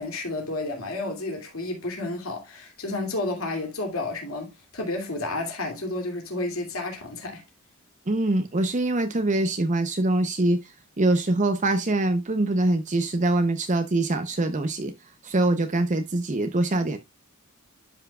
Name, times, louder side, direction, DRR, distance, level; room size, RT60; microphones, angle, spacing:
voice 1, 0.0-7.4, left 2 dB, 70° left, 2.6 m, -31 dB
voice 2, 8.1-10.6 11.0-14.9 15.2-17.0, right 2 dB, 35° right, 0.7 m, -24 dB
12.0 x 5.7 x 2.3 m
head